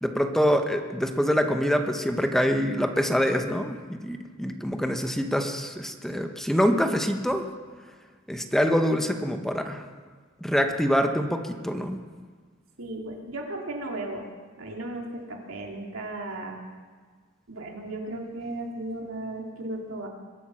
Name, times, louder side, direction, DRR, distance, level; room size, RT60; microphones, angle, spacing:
voice 1, 0.0-7.4 8.3-9.8 10.4-12.0, equal, ahead, 5 dB, 0.9 m, -25 dB
voice 2, 12.8-14.3 14.6-16.6 17.5-20.1, right 2 dB, 85° right, 0 dB, 2.5 m, -35 dB
22.0 x 8.7 x 6.2 m, 1.5 s
head